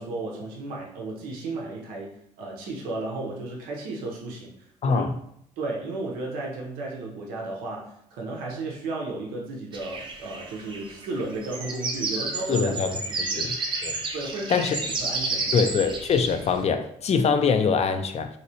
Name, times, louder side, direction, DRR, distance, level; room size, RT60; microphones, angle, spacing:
voice 1, 0.0-2.1 2.4-4.5 4.8-5.1 5.6-12.8 13.1-13.4 14.1-15.7, right 2 dB, 85° right, 0.7 m, -34 dB
voice 2, 4.8-5.1 12.5-13.0 13.4-13.6 13.8-14.0 14.5-14.8 15.5-18.3, left 5 dB, 45° left, 0.4 m, -23 dB
sound 1, 9.7-16.6, right 3 dB, 35° right, 0.7 m, -31 dB
3.0 x 2.8 x 2.7 m
supercardioid pair, 60°, 15 cm